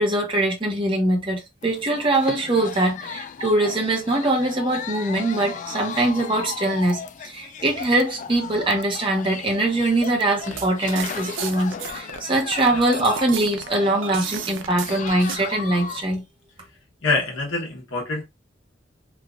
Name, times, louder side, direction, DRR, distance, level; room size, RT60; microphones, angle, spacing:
voice 1, 0.0-16.2, right 1 dB, 25° right, 0.9 m, -22 dB
sound 1, 1.6-16.0, left 6 dB, 40° left, 0.3 m, -36 dB
sound 2, 10.4-15.4, right 6 dB, 75° right, 0.5 m, -33 dB
voice 2, 17.0-18.3, left 3 dB, 80° left, 1.1 m, -25 dB
3.1 x 2.4 x 2.4 m
head